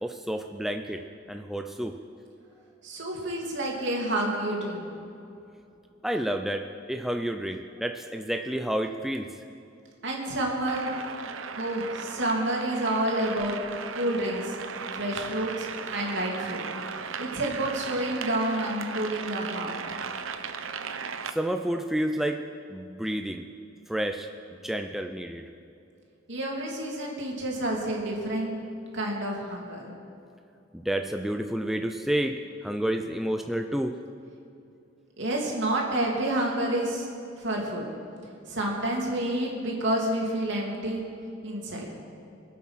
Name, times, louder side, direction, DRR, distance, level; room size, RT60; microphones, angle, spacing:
voice 1, 0.0-1.9 6.0-9.3 21.3-22.4 22.7-23.5 23.9-24.3 24.6-25.5 30.7-34.0, right 1 dB, ahead, 4 dB, 0.5 m, -30 dB
voice 2, 2.8-4.9 10.0-10.9 11.6-13.6 13.9-14.6 14.9-16.7 17.2-19.7 26.3-28.5 28.9-29.9 35.2-37.1 37.4-37.8 38.5-41.0 41.4-41.9, right 1 dB, 65° right, -2 dB, 3.0 m, -29 dB
sound 1, 10.7-21.3, right 6 dB, 85° right, 0.8 m, -37 dB
24.5 x 8.4 x 5.8 m, 2.6 s
head